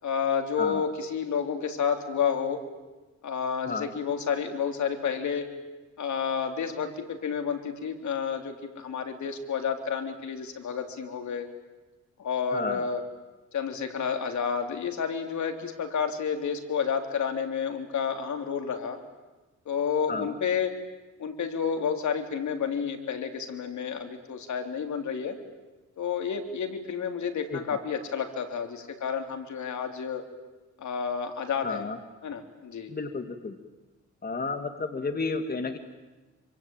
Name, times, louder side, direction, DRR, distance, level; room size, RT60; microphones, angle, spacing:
voice 1, 0.0-2.6 3.2-5.5 6.0-11.5 12.2-13.0 13.5-19.0 19.6-20.7 21.2-25.4 26.0-30.2 30.8-31.9 32.2-32.9, left 6 dB, 75° left, 5 dB, 3.4 m, -30 dB
voice 2, 12.5-12.8 20.1-20.3 27.5-27.6 31.6-32.0 32.9-33.5 34.2-35.8, left 3 dB, 30° left, 7 dB, 2.2 m, -32 dB
27.0 x 25.0 x 9.0 m, 1.2 s
cardioid pair, 105°, 30 cm